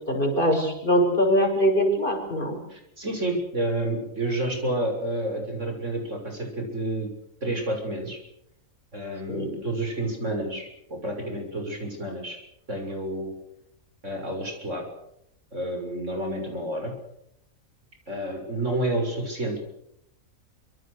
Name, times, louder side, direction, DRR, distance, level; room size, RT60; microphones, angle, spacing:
voice 1, 0.1-2.6 9.3-9.5, equal, 40° left, 2 dB, 6.7 m, -22 dB
voice 2, 2.7-7.1 7.4-8.2 8.9-12.4 12.7-13.3 14.0-14.8 15.5-16.9 18.1-19.7, right 1 dB, 60° right, 3 dB, 6.8 m, -30 dB
25.5 x 24.5 x 6.7 m, 0.77 s
omnidirectional pair, 1.4 m